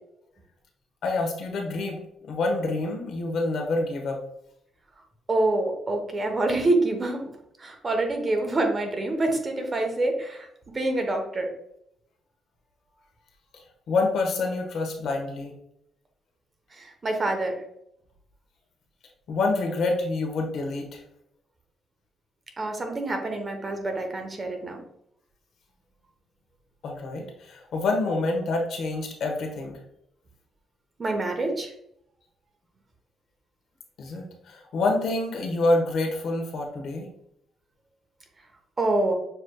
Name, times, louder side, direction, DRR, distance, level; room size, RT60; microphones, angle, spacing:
voice 1, 1.0-2.0 2.3-4.2 13.9-15.5 19.3-21.0 26.8-29.8 34.0-37.1, left 2 dB, 70° left, 2 dB, 1.1 m, -27 dB
voice 2, 5.3-7.2 7.6-10.5 10.7-11.5 16.8-17.5 22.6-24.8 31.0-31.7 38.8-39.1, right 2 dB, 30° right, 3 dB, 1.0 m, -26 dB
6.7 x 3.1 x 2.3 m, 0.74 s
cardioid pair, 90°, 0 cm